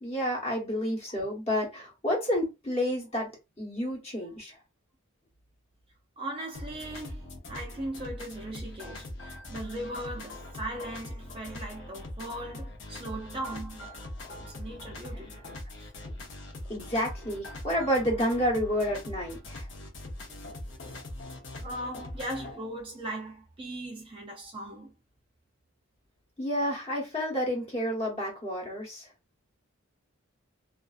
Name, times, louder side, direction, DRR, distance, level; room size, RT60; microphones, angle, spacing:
voice 1, 0.0-3.3 3.6-4.6 16.7-19.7 26.4-29.1, equal, 30° left, 0.9 m, -30 dB
voice 2, 6.2-13.9 14.4-15.3 15.8-15.9 21.5-24.9, right 1 dB, 25° right, 0.4 m, -39 dB
sound 1, 6.5-22.6, left 1 dB, 55° left, 0.6 m, -42 dB
2.5 x 2.4 x 2.3 m
head